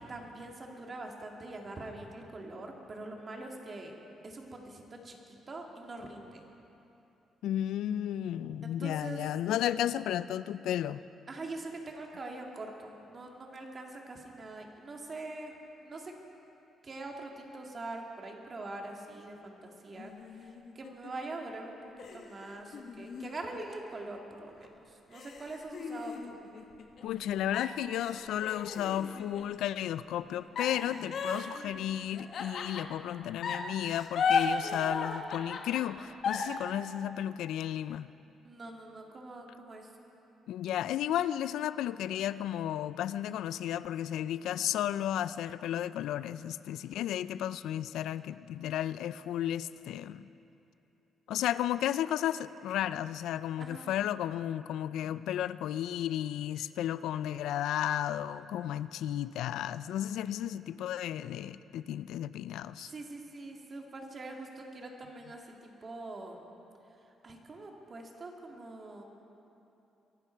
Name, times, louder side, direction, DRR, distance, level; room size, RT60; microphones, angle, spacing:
voice 1, 0.0-3.9 4.2-6.4 8.6-9.2 11.3-15.5 15.8-16.1 16.8-21.8 22.1-26.4 38.4-39.9 44.5-44.6 53.6-53.9 62.8-66.4 67.2-69.0, right 2 dB, 40° right, 1 dB, 2.1 m, -43 dB
voice 2, 7.4-11.0 27.0-38.1 40.5-50.3 51.3-62.9, left 11 dB, 85° left, 15 dB, 0.3 m, -33 dB
sound 1, 19.9-21.3 22.0-24.2 24.6-24.7 25.1-27.2 27.5-29.5 30.6-33.1 33.4-36.6, left 5 dB, 60° left, 1.2 m, -35 dB
23.0 x 12.0 x 4.5 m, 2.9 s
cardioid pair, 90°, 0 cm